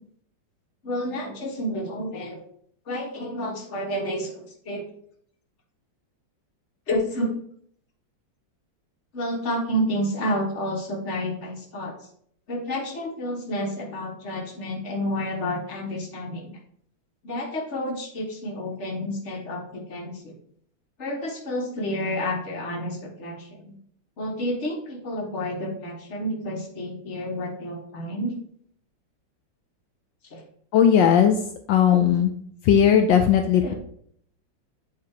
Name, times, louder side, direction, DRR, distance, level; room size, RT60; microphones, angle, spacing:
voice 1, 0.8-2.4 2.9-4.8 6.9-7.3 9.1-11.9 12.5-16.5 17.2-20.3 21.0-23.7 24.2-28.4 30.3-30.4 31.9-32.1 33.6-33.7, equal, 40° left, 1 dB, 1.6 m, -30 dB
voice 2, 30.7-31.4 31.7-32.3 32.7-33.7, left 8 dB, 75° left, 6 dB, 1.3 m, -17 dB
8.5 x 3.5 x 4.8 m, 0.64 s
omnidirectional pair, 2.1 m